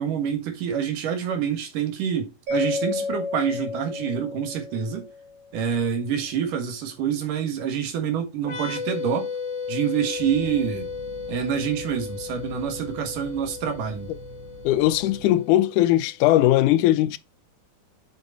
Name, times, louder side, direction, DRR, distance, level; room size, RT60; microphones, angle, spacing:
voice 1, 0.0-5.1 5.5-9.3 9.7-10.9 11.3-14.1, right 8 dB, 85° right, 3.2 m, -27 dB
Mallet percussion, 2.5-5.5, left 4 dB, 55° right, 3.4 m, -31 dB
sound 1, 8.4-15.9, left 5 dB, 65° left, 1.1 m, -35 dB
sound 2, 10.2-15.3, right 4 dB, 70° right, 4.4 m, -44 dB
voice 2, 14.6-17.2, left 14 dB, 85° left, 2.0 m, -19 dB
7.8 x 5.4 x 3.9 m
omnidirectional pair, 3.6 m